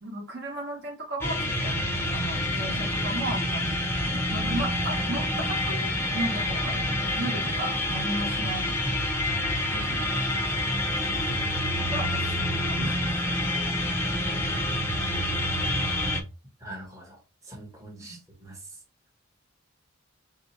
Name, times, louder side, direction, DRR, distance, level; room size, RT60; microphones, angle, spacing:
voice 1, 0.0-3.8 4.1-8.7 9.7-10.1 11.9-13.3 18.1-18.2, right 1 dB, 50° right, 2 dB, 1.1 m, -35 dB
sound 1, 1.2-16.2, left 1 dB, 10° left, 0.7 m, -27 dB
voice 2, 16.6-17.2 17.5-18.6, right 1 dB, 15° right, 0 dB, 1.0 m, -41 dB
3.5 x 2.8 x 4.0 m, 0.32 s
head